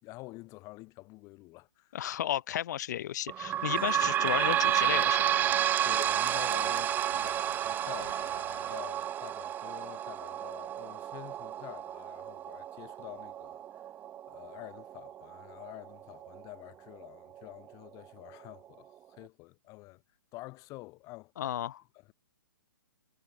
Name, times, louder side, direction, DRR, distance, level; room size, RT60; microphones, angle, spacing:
voice 1, 0.0-2.0 5.8-13.9 14.3-20.0 20.3-21.3 21.9-22.1, left 22 dB, 30° left, 6.6 m, -48 dB
voice 2, 1.9-5.4 21.4-21.8, left 11 dB, 50° left, 1.8 m, -33 dB
sound 1, 3.3-16.4 17.0-17.1 17.4-17.5 18.3-18.4, right 11 dB, 15° right, 0.5 m, -31 dB
sound 2, 3.8-8.8, left 4 dB, 80° left, 6.6 m, -52 dB
figure-of-eight pair, 125°, 12 cm